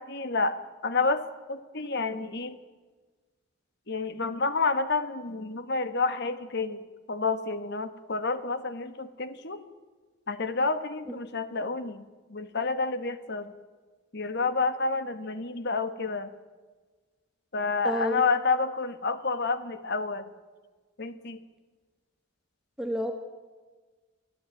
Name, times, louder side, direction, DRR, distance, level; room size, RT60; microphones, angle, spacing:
voice 1, 0.0-2.6 3.9-6.8 7.1-9.6 10.3-12.0 12.3-13.5 14.1-16.3 17.5-20.3 21.0-21.4, left 4 dB, 55° left, 11 dB, 1.6 m, -29 dB
voice 2, 17.8-18.2 22.8-23.1, equal, 5° right, 4 dB, 1.5 m, -29 dB
24.5 x 15.0 x 9.1 m, 1.4 s
head